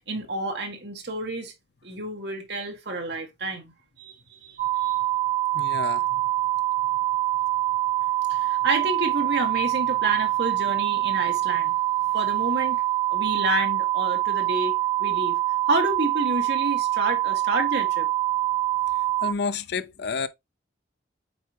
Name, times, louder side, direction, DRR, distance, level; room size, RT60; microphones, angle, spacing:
voice 1, 0.1-1.5 1.8-3.7 4.0-5.0 8.3-11.7 12.1-12.8 13.1-15.3 15.7-18.1, right 2 dB, 60° right, 1.6 m, -29 dB
sound 1, 4.6-19.3, right 15 dB, 35° right, 0.7 m, -25 dB
voice 2, 5.5-6.2 19.2-20.3, left 5 dB, 55° left, 0.5 m, -30 dB
7.9 x 4.5 x 2.9 m
head